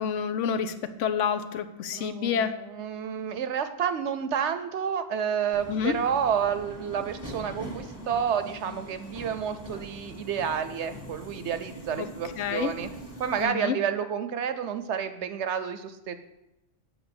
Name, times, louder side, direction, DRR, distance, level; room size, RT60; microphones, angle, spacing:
voice 1, 0.0-2.6 5.7-6.0 12.0-12.1 12.4-12.7 13.4-13.7, left 7 dB, 80° left, 11 dB, 1.0 m, -28 dB
voice 2, 1.9-12.9 13.2-16.1, right 8 dB, 70° right, 10 dB, 1.0 m, -30 dB
Subway metro underground, 5.5-13.4, equal, 35° left, 1.7 m, -42 dB
8.1 x 5.7 x 7.8 m, 0.93 s
omnidirectional pair, 1.3 m